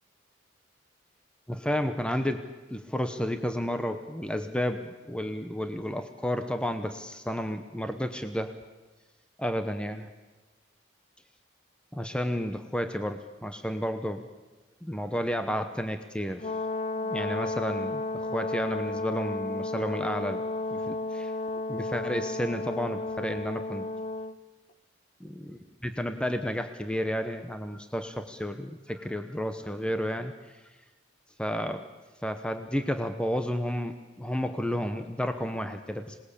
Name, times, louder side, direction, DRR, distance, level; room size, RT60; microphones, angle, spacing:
voice 1, 1.5-8.5 9.4-10.1 11.9-14.2 14.8-16.4 17.0-20.4 20.7-21.3 21.7-23.9 25.2-30.3 31.4-31.8 32.2-36.2, equal, 5° left, 7 dB, 1.0 m, -32 dB
Brass instrument, 16.4-24.4, left 2 dB, 35° left, 0.7 m, -33 dB
26.5 x 20.0 x 8.5 m, 1.2 s
head